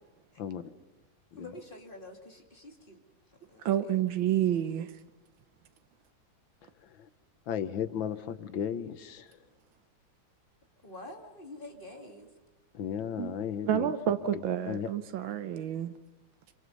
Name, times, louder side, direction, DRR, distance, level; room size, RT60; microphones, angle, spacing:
voice 1, 1.4-3.0 3.3-3.9 10.8-12.3, left 1 dB, 25° left, 2.8 m, -47 dB
voice 2, 3.6-4.9 13.2-13.3 13.6-15.9, right 10 dB, 90° right, 1.8 m, -29 dB
voice 3, 7.5-9.4 12.7-13.9 14.3-14.9, left 8 dB, 80° left, 1.8 m, -35 dB
26.5 x 25.0 x 5.5 m
omnidirectional pair, 2.1 m